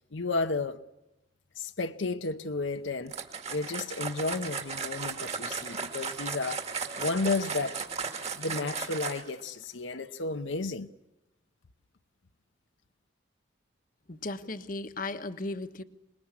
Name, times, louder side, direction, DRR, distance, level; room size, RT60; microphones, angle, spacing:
voice 1, 0.1-0.8 1.6-3.1 3.5-6.6 7.0-7.8 8.3-10.9, left 3 dB, 80° left, 0.9 m, -32 dB
Liquid bottle shaking long, 3.1-9.4, right 5 dB, 35° right, 2.1 m, -36 dB
voice 2, 14.1-15.8, left 2 dB, 45° left, 1.3 m, -36 dB
26.0 x 21.0 x 9.7 m
head